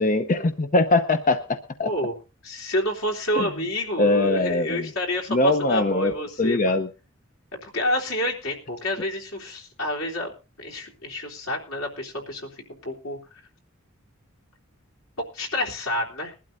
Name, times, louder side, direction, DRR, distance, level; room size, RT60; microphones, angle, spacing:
voice 1, 0.0-1.9 3.3-3.5 4.0-4.9 5.3-6.1 6.4-6.9, left 2 dB, 40° left, 8 dB, 0.7 m, -22 dB
voice 2, 1.8-2.1 2.4-6.7 7.6-10.3 10.6-13.2 15.2-16.3, left 1 dB, 80° left, -1 dB, 3.5 m, -29 dB
21.5 x 12.0 x 2.6 m, 0.31 s
head